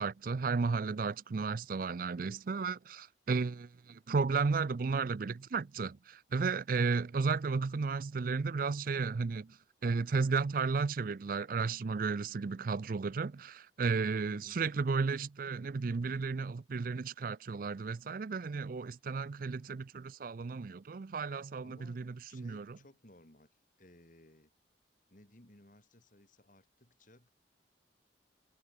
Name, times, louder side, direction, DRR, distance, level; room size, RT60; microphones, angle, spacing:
voice 1, 0.0-22.8, right 4 dB, 45° right, 0.4 m, -33 dB
voice 2, 14.3-14.6 21.6-24.5 25.1-27.3, left 1 dB, 45° left, 3.4 m, -59 dB
head